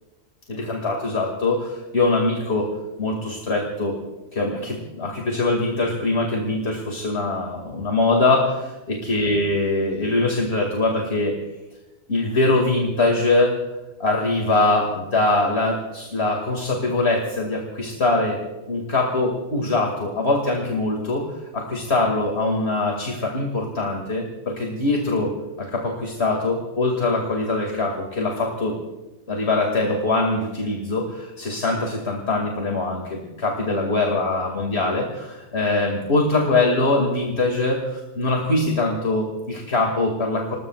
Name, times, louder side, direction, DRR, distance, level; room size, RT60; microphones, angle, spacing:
voice 1, 0.5-2.7 3.0-4.0 4.3-11.3 12.1-13.6 14.0-18.4 18.7-25.3 25.6-28.8 29.3-40.5, left 2 dB, 65° left, 1 dB, 2.6 m, -23 dB
27.5 x 20.0 x 2.4 m, 1.1 s
omnidirectional pair, 1.2 m